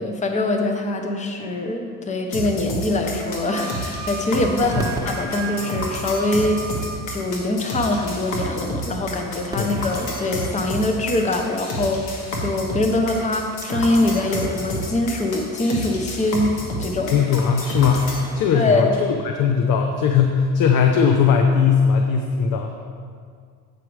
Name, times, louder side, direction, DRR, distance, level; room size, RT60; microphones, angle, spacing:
voice 1, 0.0-6.8 7.1-17.2 18.5-18.9, left 2 dB, 20° left, 4 dB, 0.7 m, -23 dB
sound 1, 2.3-18.2, left 1 dB, 80° left, 1.6 m, -30 dB
Wind instrument woodwind instrument, 3.4-7.2, right 5 dB, 40° right, 0.9 m, -35 dB
sound 2, 4.6-7.3 9.5-11.9 13.5-16.0 17.4-19.8, right 2 dB, 10° right, 1.0 m, -38 dB
voice 2, 17.1-18.9 19.2-22.8, left 6 dB, 55° left, 4 dB, 0.6 m, -19 dB
8.4 x 4.9 x 4.7 m, 2.1 s
supercardioid pair, 100°, 40 cm